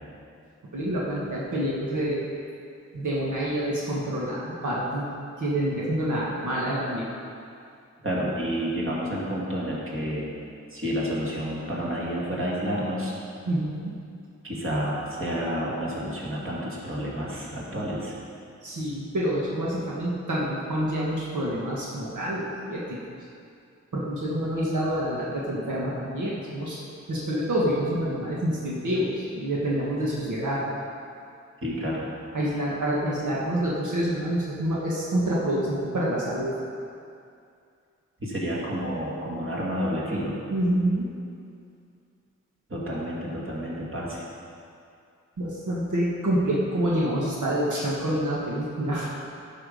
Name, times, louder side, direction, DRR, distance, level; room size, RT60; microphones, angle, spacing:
voice 1, 0.7-2.3 2.9-5.1 5.4-7.0 13.5-14.0 18.6-23.0 23.9-26.8 27.1-30.6 32.3-36.6 40.5-41.1 45.4-49.1, right 1 dB, 90° right, -6 dB, 1.5 m, -27 dB
voice 2, 8.0-10.3 10.7-13.1 14.4-18.1 31.6-32.1 38.2-40.4 42.7-44.2, equal, 45° right, -6 dB, 2.4 m, -30 dB
11.0 x 6.0 x 5.2 m, 2.4 s
wide cardioid pair, 85°, 29 cm